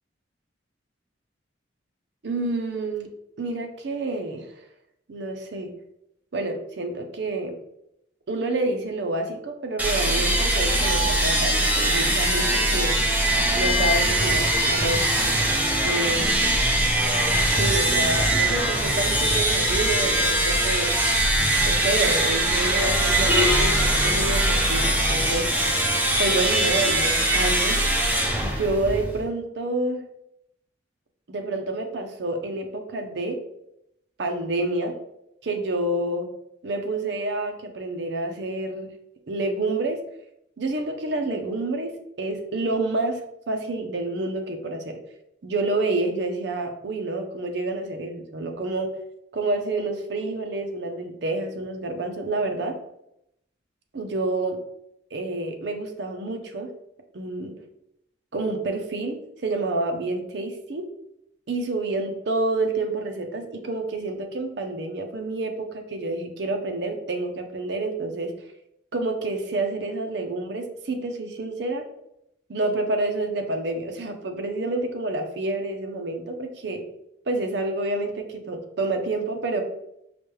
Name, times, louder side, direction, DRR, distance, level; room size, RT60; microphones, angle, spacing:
voice 1, 2.2-3.1 3.4-4.5 5.1-5.7 6.3-7.6 8.3-13.0 13.5-15.1 15.8-16.4 17.5-20.9 21.6-25.5 26.2-27.8 28.4-30.0 31.3-33.4 34.2-35.0 35.4-36.3 36.6-38.9 39.3-40.0 40.6-41.9 42.2-43.2 43.5-45.0 45.4-48.9 49.3-52.8 53.9-54.6 55.1-56.7 57.1-57.6 58.3-60.9 61.5-68.3 68.9-71.8 72.5-76.8 77.3-79.6, right 2 dB, 65° right, 4 dB, 0.5 m, -28 dB
sound 1, 9.8-29.2, right 1 dB, 10° right, 0.5 m, -22 dB
4.8 x 2.2 x 3.1 m, 0.80 s
head